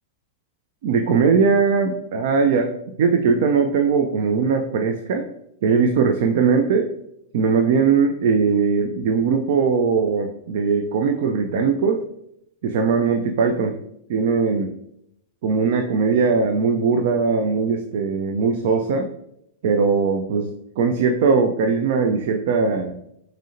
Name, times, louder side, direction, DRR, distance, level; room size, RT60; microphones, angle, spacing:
voice 1, 0.8-2.7 3.0-5.3 5.6-6.9 7.3-12.0 12.6-13.8 14.1-14.7 15.4-19.1 19.6-23.0, right 5 dB, 55° right, 5 dB, 0.4 m, -20 dB
6.2 x 3.2 x 2.6 m, 0.77 s
figure-of-eight pair, 95°, 0 cm